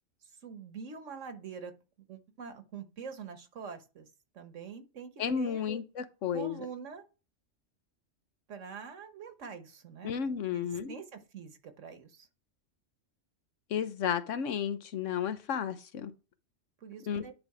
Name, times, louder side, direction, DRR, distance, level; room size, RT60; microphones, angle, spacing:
voice 1, 0.4-1.8 2.1-5.7 6.3-7.1 8.5-10.2 10.5-12.3 16.8-17.3, right 6 dB, 75° right, 1.4 m, -45 dB
voice 2, 5.2-6.6 10.0-10.9 13.7-16.1 17.1-17.2, left 7 dB, 80° left, 1.2 m, -32 dB
10.5 x 3.6 x 4.8 m
omnidirectional pair, 1.3 m